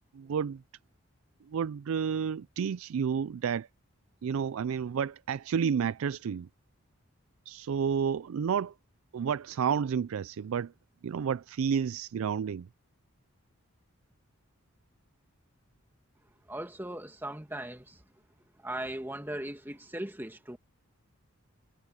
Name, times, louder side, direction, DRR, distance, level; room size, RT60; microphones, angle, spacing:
voice 1, 0.1-0.6 1.5-3.7 4.2-6.5 7.5-8.7 9.1-10.7 11.0-12.7, right 7 dB, 75° right, 0.3 m, -30 dB
voice 2, 16.5-18.0 18.6-20.6, right 1 dB, 10° right, 1.8 m, -38 dB
head